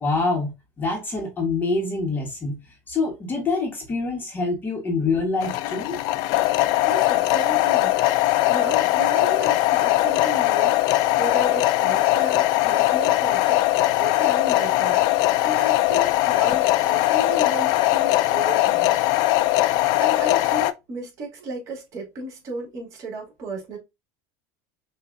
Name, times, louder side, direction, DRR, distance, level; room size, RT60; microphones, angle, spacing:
voice 1, 0.0-2.6 2.9-6.0, left 3 dB, 25° left, 1.3 m, -25 dB
sound 1, 5.4-20.7, left 16 dB, 55° left, 0.4 m, -20 dB
voice 2, 6.8-15.0 15.4-19.0 20.0-23.8, right 1 dB, 40° right, 2.3 m, -34 dB
6.1 x 2.7 x 2.6 m
supercardioid pair, 135°, 8 cm